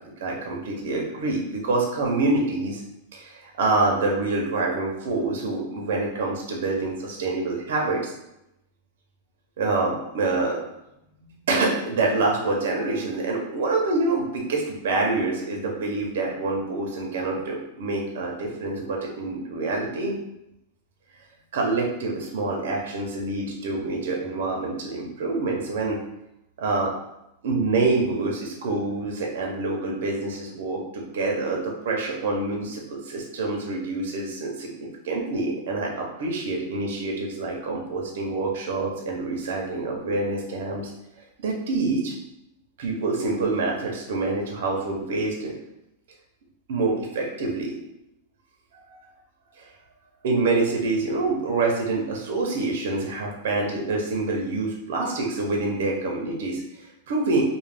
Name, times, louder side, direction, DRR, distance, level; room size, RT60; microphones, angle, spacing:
voice 1, 0.2-2.8 3.1-8.1 9.6-10.6 11.2-20.2 21.5-26.0 26.6-26.9 27.4-40.9 41.4-42.1 42.8-45.5 46.7-47.7 48.9-49.0 49.5-49.7 50.2-57.4, right 3 dB, 75° right, 0 dB, 0.6 m, -26 dB
2.4 x 2.1 x 3.3 m, 0.85 s
supercardioid pair, 155°, 0 cm